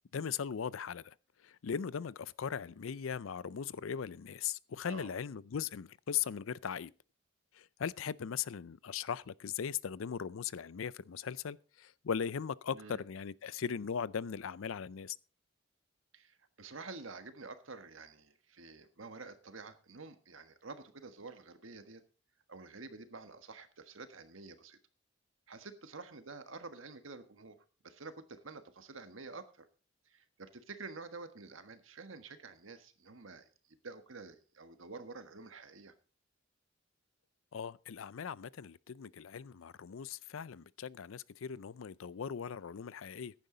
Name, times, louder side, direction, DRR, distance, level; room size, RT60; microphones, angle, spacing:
voice 1, 0.1-1.1 1.4-6.9 7.6-15.1 37.5-43.3, left 7 dB, 85° left, 0.5 m, -39 dB
voice 2, 16.1-22.0 22.5-24.8 25.5-27.6 27.8-29.7 30.1-33.5 33.8-35.9, right 3 dB, 80° right, 1.5 m, -49 dB
14.5 x 10.5 x 3.9 m
head